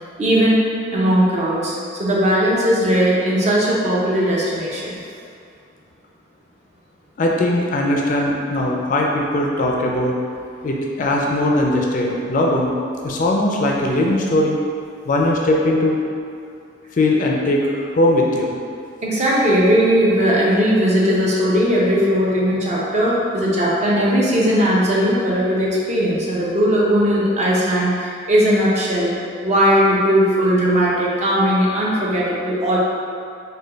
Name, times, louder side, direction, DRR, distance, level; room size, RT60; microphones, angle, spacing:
voice 1, 0.2-0.7 0.9-5.0 19.0-29.1 29.4-32.8, equal, 35° right, -5 dB, 0.6 m, -18 dB
voice 2, 7.2-10.2 10.6-12.7 13.0-14.6 15.1-16.0 16.9-18.6, left 1 dB, 40° left, -1 dB, 0.3 m, -19 dB
3.2 x 2.2 x 3.7 m, 2.4 s
head